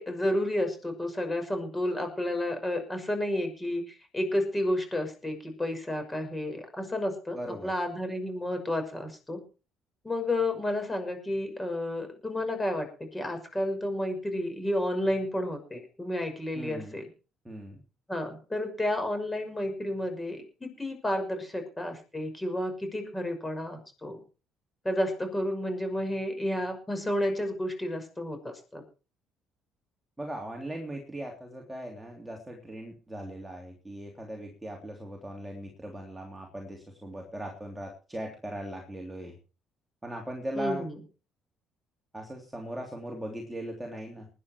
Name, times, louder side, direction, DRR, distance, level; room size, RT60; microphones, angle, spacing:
voice 1, 0.0-7.4 7.6-9.4 10.0-12.9 13.1-17.1 18.1-24.2 24.8-28.8 40.6-40.9, left 1 dB, 10° left, 6 dB, 6.1 m, -31 dB
voice 2, 7.3-7.7 16.5-17.0 17.4-17.8 30.2-39.4 40.0-40.8 42.1-44.3, right 1 dB, 10° right, 1 dB, 3.3 m, -39 dB
20.0 x 10.0 x 4.7 m, 0.35 s
cardioid pair, 130°, 0 cm